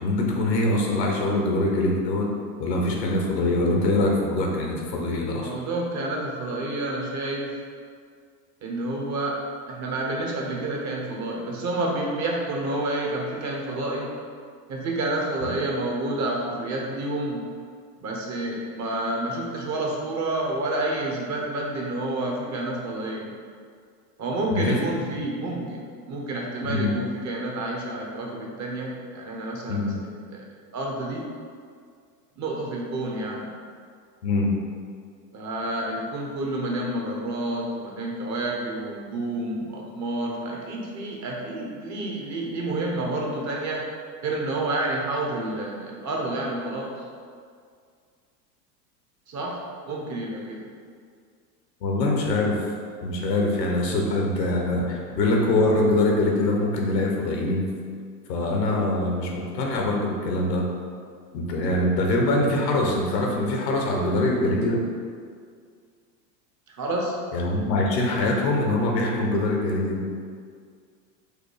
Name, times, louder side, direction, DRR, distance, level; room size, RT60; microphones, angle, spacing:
voice 1, 0.0-2.3 2.6-5.5 24.5-24.8 26.6-26.9 29.7-30.0 34.2-34.5 51.8-52.6 53.0-57.7 58.3-60.6 61.3-64.8 67.3-70.1, left 2 dB, 80° left, -1 dB, 1.1 m, -23 dB
voice 2, 5.4-7.5 8.6-9.4 9.7-14.1 14.7-17.4 18.0-23.3 24.2-30.4 30.7-31.2 32.4-33.5 35.3-43.8 44.2-46.9 49.3-49.6 49.9-50.7 66.7-67.2, right 2 dB, 35° right, -1 dB, 1.0 m, -29 dB
5.0 x 2.2 x 4.7 m, 2.1 s
hypercardioid pair, 90°, 50 cm